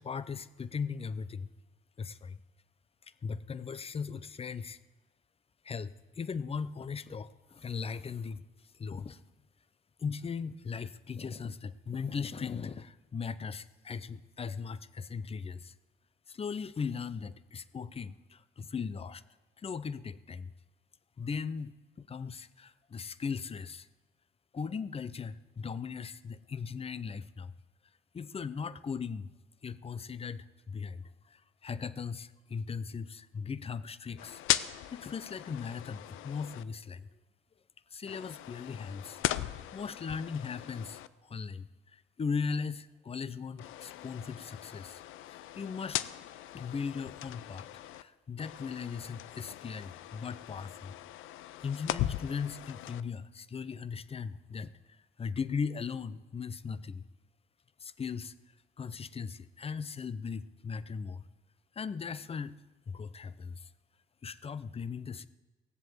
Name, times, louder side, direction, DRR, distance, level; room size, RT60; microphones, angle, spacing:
voice 1, 0.0-1.5 2.0-2.4 3.2-4.8 5.6-8.4 8.7-9.2 10.0-15.7 16.3-19.2 19.6-20.5 21.2-23.9 24.5-27.5 28.1-29.3 29.6-34.4 34.9-37.1 37.9-39.2 39.7-45.0 45.3-46.0 46.5-47.7 47.9-50.9 51.6-57.0 57.8-58.3 58.8-61.2 61.7-62.6 62.9-63.7 64.2-65.3, left 5 dB, 30° left, 16 dB, 0.6 m, -38 dB
sound 1, 34.2-36.6 38.1-41.1 43.6-48.0 48.4-53.0, left 14 dB, 85° left, 0.5 m, -38 dB
17.5 x 7.6 x 7.9 m, 1.2 s
cardioid pair, 90°, 20 cm